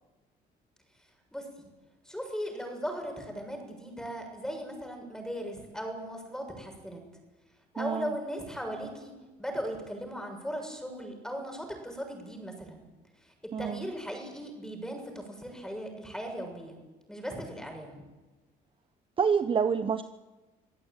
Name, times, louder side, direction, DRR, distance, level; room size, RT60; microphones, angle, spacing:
voice 1, 1.3-1.7 2.0-7.0 7.7-9.1 9.4-12.8 13.2-16.8 17.1-18.0, equal, 5° left, 3 dB, 6.9 m, -38 dB
voice 2, 7.8-8.1 13.5-13.8 19.2-20.0, right 6 dB, 30° right, 11 dB, 0.9 m, -27 dB
26.0 x 16.5 x 8.9 m, 1.2 s
cardioid pair, 110°, 17 cm